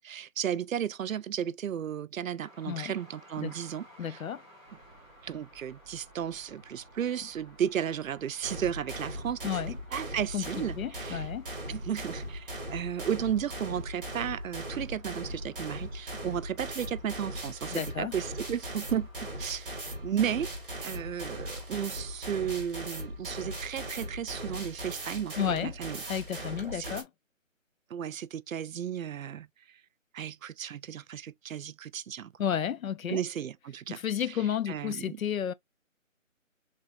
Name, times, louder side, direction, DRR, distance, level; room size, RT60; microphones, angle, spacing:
voice 1, 0.0-4.2 5.2-9.6 9.9-11.2 11.7-19.1 19.4-19.7 20.0-20.5 20.8-25.4 25.6-26.0 26.7-26.9 27.9-29.5 30.1-32.3 33.1-34.0 34.7-35.2, right 9 dB, 80° right, 0.5 m, -34 dB
sound 1, 2.4-22.2, equal, ahead, 1.6 m, -59 dB
voice 2, 4.0-4.4 9.4-9.8 10.3-10.5 10.8-11.5 17.7-18.1 25.4-25.7 26.1-27.1 32.4-33.2 33.9-35.5, left 9 dB, 80° left, 0.6 m, -32 dB
sound 2, 4.7-11.0, right 1 dB, 20° left, 1.5 m, -57 dB
sound 3, 8.4-27.0, equal, 40° right, 1.3 m, -39 dB
3.5 x 3.4 x 2.5 m
hypercardioid pair, 180°, 40 cm